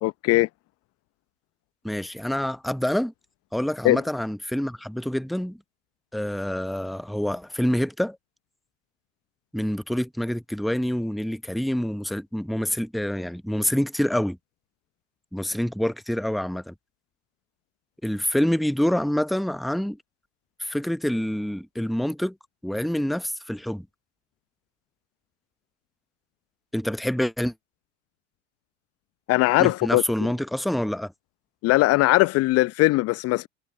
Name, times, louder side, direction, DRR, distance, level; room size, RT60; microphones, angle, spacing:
voice 1, 0.0-0.5 3.8-4.0 29.3-30.0 31.6-33.5, left 19 dB, 40° left, 0.8 m, -20 dB
voice 2, 1.8-3.1 3.5-5.6 6.1-8.2 9.5-14.4 15.3-16.7 18.0-20.0 20.6-22.4 22.6-23.9 26.7-27.5 29.6-31.1, equal, ahead, 0.9 m, -26 dB
figure-of-eight pair, 80°, 36 cm